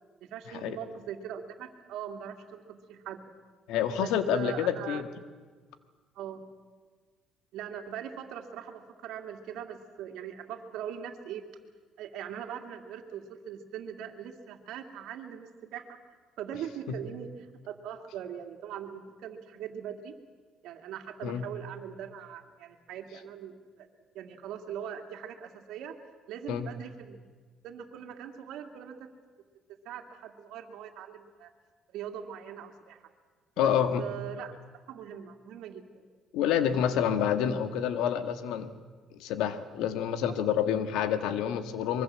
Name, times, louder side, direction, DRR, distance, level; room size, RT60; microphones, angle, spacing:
voice 1, 0.2-3.2 4.0-5.0 6.1-6.4 7.5-11.4 12.0-16.0 16.4-20.2 20.6-23.9 24.1-26.0 26.3-27.3 27.6-29.1 29.8-31.5 31.9-33.0 33.6-34.5 34.9-36.0, right 9 dB, 80° right, 4 dB, 2.5 m, -41 dB
voice 2, 3.7-5.0 16.9-17.0 21.2-21.4 26.5-26.7 33.6-34.0 36.3-38.7 39.2-42.0, left 9 dB, 85° left, 10 dB, 1.8 m, -28 dB
24.5 x 22.5 x 7.6 m, 1.5 s
cardioid pair, 115°, 0 cm